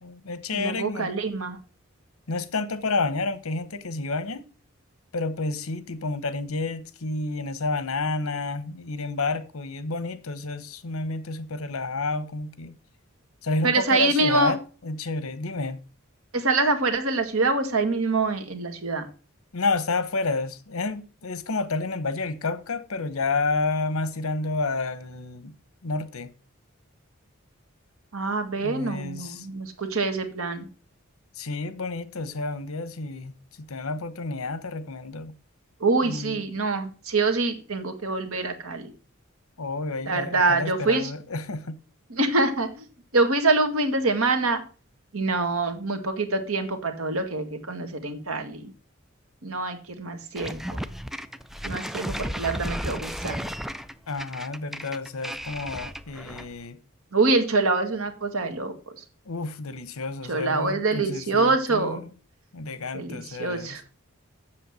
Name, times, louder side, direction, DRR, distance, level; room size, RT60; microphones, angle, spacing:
voice 1, 0.0-1.1 2.3-4.4 5.1-12.7 13.4-15.8 19.5-25.5 25.8-26.3 28.6-29.5 31.3-35.3 36.0-36.4 39.6-41.7 54.1-56.8 59.2-62.1 62.5-63.8, left 3 dB, 80° left, 1.0 m, -30 dB
voice 2, 0.5-1.6 13.6-14.5 16.3-19.1 28.1-30.7 35.8-38.9 40.1-41.1 42.1-42.9 43.1-44.6 45.1-48.7 49.4-50.8 51.6-53.5 57.1-58.7 60.3-62.0 62.9-63.8, right 3 dB, 80° right, 1.7 m, -25 dB
sound 1, 50.4-56.6, equal, ahead, 0.4 m, -34 dB
7.8 x 7.2 x 6.2 m
head